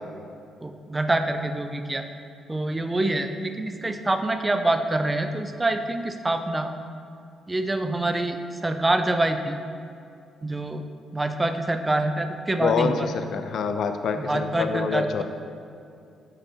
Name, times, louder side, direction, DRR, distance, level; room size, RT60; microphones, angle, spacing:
voice 1, 0.6-2.1 2.5-6.7 7.5-9.6 10.4-10.8 11.1-13.1 14.1-15.2, right 2 dB, 20° right, 7 dB, 0.4 m, -26 dB
voice 2, 12.6-15.2, left 6 dB, 65° left, 8 dB, 0.4 m, -26 dB
7.9 x 5.3 x 2.8 m, 2.4 s
cardioid pair, 90°, 0 cm